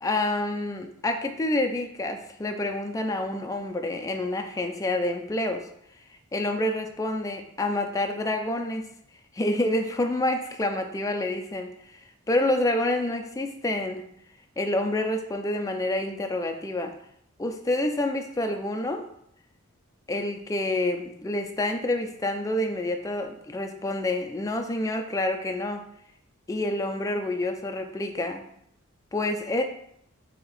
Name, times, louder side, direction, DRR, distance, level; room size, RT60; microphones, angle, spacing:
voice 1, 0.0-5.7 6.3-8.8 9.3-11.7 12.3-14.1 14.6-16.9 17.4-19.0 20.1-25.9 26.5-28.5 29.1-29.6, left 1 dB, 15° left, 5 dB, 0.3 m, -28 dB
4.2 x 2.8 x 4.0 m, 0.73 s
head